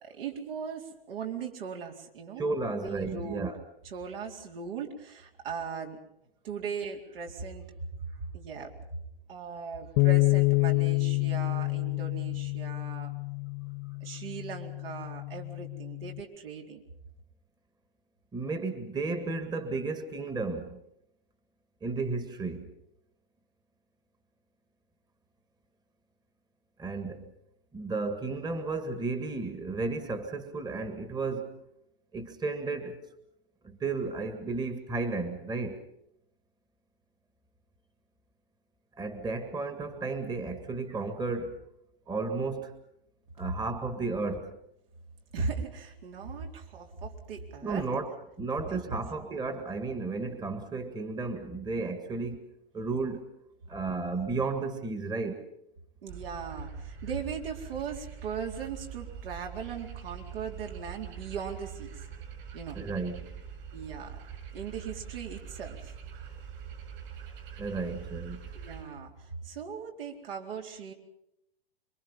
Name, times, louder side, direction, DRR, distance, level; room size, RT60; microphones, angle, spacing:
voice 1, 0.0-2.6 2.8-3.5 3.8-6.0 6.4-7.6 8.1-8.7 9.3-13.1 14.0-16.8 45.3-47.9 48.7-48.8 56.0-61.9 62.5-62.8 63.7-64.2 64.5-65.9 68.5-69.1 69.4-70.9, right 6 dB, 70° right, 1 dB, 4.3 m, -38 dB
voice 2, 2.4-3.6 18.3-20.8 21.8-22.7 26.8-27.3 27.7-31.6 32.1-33.0 33.6-35.8 39.0-41.6 42.1-42.7 43.4-44.6 47.6-48.1 48.4-52.4 52.7-53.3 53.7-55.5 62.7-63.3 67.6-68.4, right 3 dB, 15° right, 8 dB, 1.8 m, -33 dB
Bass guitar, 10.0-16.2, left 30 dB, 45° left, 0.9 m, -28 dB
sound 1, 56.1-68.8, right 7 dB, 55° right, 7.1 m, -44 dB
26.5 x 23.5 x 5.6 m, 0.79 s
hypercardioid pair, 115°, 30 cm